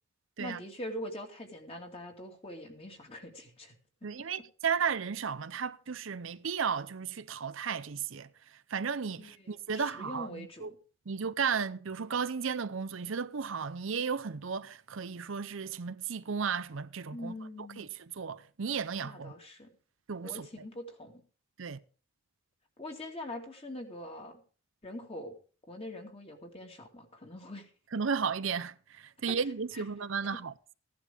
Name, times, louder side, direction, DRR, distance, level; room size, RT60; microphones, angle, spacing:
voice 1, 0.4-3.7 9.2-10.8 17.1-17.9 19.0-19.7 20.2-21.2 22.8-24.4 24.8-25.3 25.7-27.7 29.7-29.8, left 1 dB, 25° left, 2.5 m, -43 dB
voice 2, 4.0-10.7 11.1-17.3 17.8-19.3 20.1-20.5 21.6-21.8 27.9-30.7, right 6 dB, 65° right, 0.6 m, -34 dB
16.0 x 11.0 x 3.6 m
head